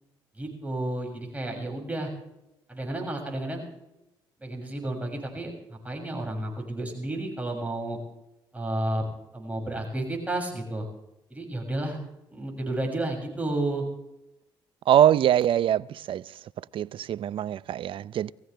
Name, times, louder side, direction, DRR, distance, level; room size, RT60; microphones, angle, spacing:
voice 1, 0.4-2.1 2.7-3.6 4.4-8.0 8.5-10.9 11.3-12.0 12.3-13.8, right 1 dB, 15° right, 6.9 m, -31 dB
voice 2, 14.9-16.2 16.7-18.3, right 10 dB, 60° right, 0.5 m, -23 dB
20.5 x 16.0 x 3.4 m
supercardioid pair, 60°, 10 cm